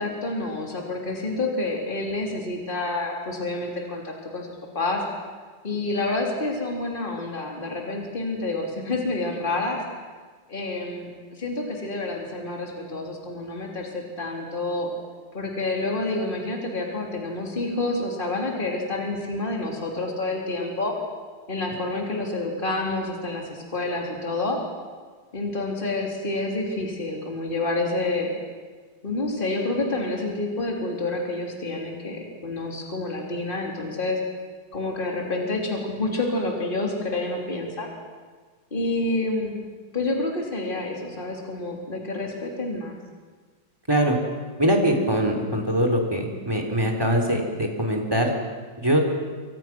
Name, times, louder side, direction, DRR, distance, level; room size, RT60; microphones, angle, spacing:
voice 1, 0.0-5.0 5.6-9.8 10.5-14.9 15.3-20.9 21.5-24.6 25.3-28.3 29.0-34.2 34.7-37.9 38.7-39.6 39.9-43.0, left 2 dB, 25° left, 0 dB, 3.4 m, -28 dB
voice 2, 44.6-48.3 48.8-49.0, equal, 10° right, 3 dB, 3.5 m, -22 dB
28.0 x 24.0 x 6.1 m, 1.5 s
omnidirectional pair, 2.0 m